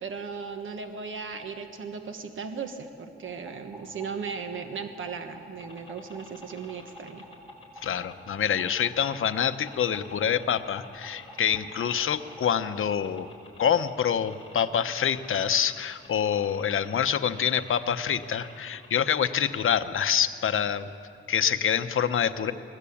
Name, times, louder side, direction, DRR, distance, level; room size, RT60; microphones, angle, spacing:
voice 1, 0.0-7.2, right 5 dB, 70° right, 5 dB, 1.4 m, -37 dB
sound 1, 3.2-13.3, equal, 5° left, 5.2 m, -50 dB
sound 2, 5.6-19.4, left 3 dB, 25° left, 6.7 m, -51 dB
voice 2, 7.8-13.3 13.6-20.9 21.3-22.5, left 8 dB, 75° left, 10 dB, 0.9 m, -26 dB
21.5 x 21.0 x 8.6 m, 2.4 s
wide cardioid pair, 145°, 21 cm